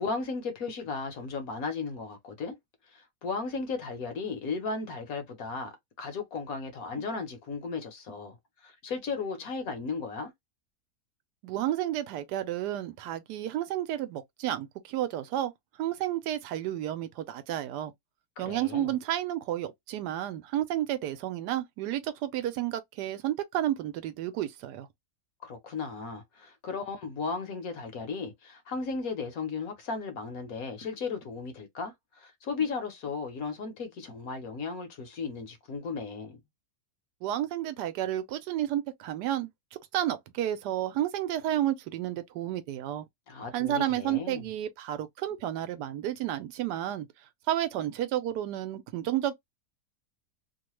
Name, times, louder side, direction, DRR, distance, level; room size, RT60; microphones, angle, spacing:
voice 1, 0.0-2.6 2.9-8.4 8.6-10.3 18.4-18.9 25.4-36.4 43.3-44.5, left 4 dB, 65° left, 1.3 m, -35 dB
voice 2, 11.4-15.5 15.8-17.9 18.4-24.9 37.2-39.5 39.9-43.1 43.5-47.1 47.5-49.3, right 12 dB, 85° right, 1.2 m, -31 dB
3.1 x 2.2 x 3.0 m
omnidirectional pair, 1.7 m